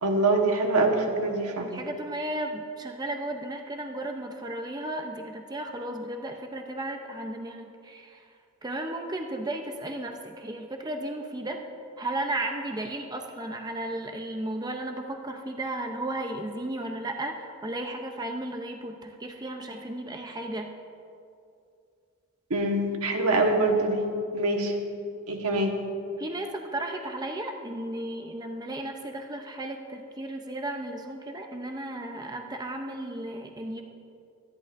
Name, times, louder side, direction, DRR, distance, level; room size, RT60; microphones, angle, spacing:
voice 1, 0.0-1.7 22.5-24.1 24.3-24.7 25.3-25.8, right 2 dB, 85° right, 2 dB, 1.4 m, -24 dB
voice 2, 1.6-8.3 8.6-11.6 12.0-20.7 26.2-33.8, right 1 dB, 20° right, 4 dB, 0.7 m, -34 dB
24.0 x 11.0 x 2.6 m, 2.5 s
head